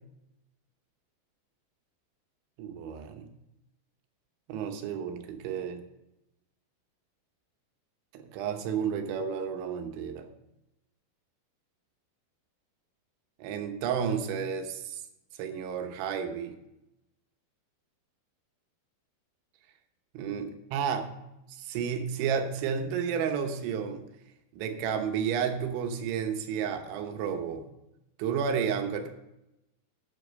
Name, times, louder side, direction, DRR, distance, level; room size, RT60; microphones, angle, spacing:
voice 1, 2.6-3.3 4.5-5.8 8.1-10.3 13.4-15.0 15.4-16.6 20.2-21.1 21.5-24.0 24.5-27.7 28.2-29.1, right 7 dB, 85° right, 6 dB, 3.4 m, -31 dB
9.9 x 8.2 x 5.3 m, 0.90 s
omnidirectional pair, 5.3 m